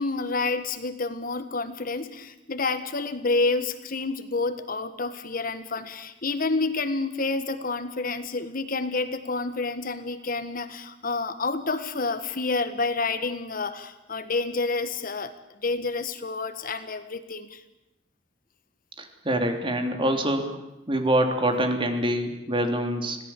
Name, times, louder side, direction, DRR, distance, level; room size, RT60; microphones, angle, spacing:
voice 1, 0.0-15.3 15.6-17.6, left 3 dB, 50° left, 10 dB, 1.6 m, -29 dB
voice 2, 19.0-20.5 20.9-23.2, right 1 dB, 30° right, 5 dB, 3.2 m, -25 dB
25.5 x 18.0 x 8.5 m, 0.93 s
head